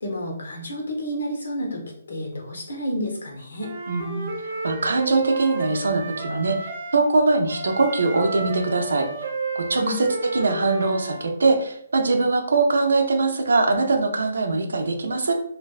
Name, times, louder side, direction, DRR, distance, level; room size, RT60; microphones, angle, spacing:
voice 1, 0.0-3.7 9.8-10.0, equal, 85° left, 0 dB, 0.8 m, -30 dB
Wind instrument woodwind instrument, 3.6-7.0 7.5-11.2, right 3 dB, 45° right, 0.6 m, -32 dB
voice 2, 3.9-4.3 4.6-9.1 9.5-10.1 10.3-15.3, right 3 dB, 90° right, 4 dB, 0.5 m, -22 dB
2.5 x 2.2 x 2.3 m, 0.68 s
hypercardioid pair, 170°, 0 cm